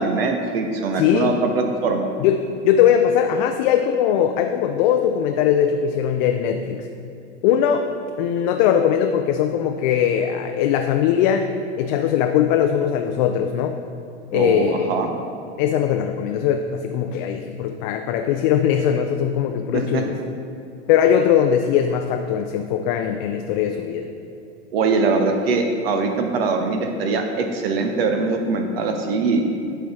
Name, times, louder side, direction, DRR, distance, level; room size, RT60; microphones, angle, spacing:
voice 1, 0.0-2.1 14.3-15.1 19.7-20.0 24.7-29.4, right 4 dB, 60° right, 4 dB, 0.8 m, -22 dB
voice 2, 0.9-1.3 2.2-2.4 2.6-6.9 7.4-7.9 8.2-11.5 11.8-13.8 14.3-14.9 15.6-20.2 20.9-24.1, left 9 dB, 45° left, 5 dB, 0.5 m, -20 dB
11.5 x 4.5 x 3.6 m, 2.6 s
figure-of-eight pair, 90°, 34 cm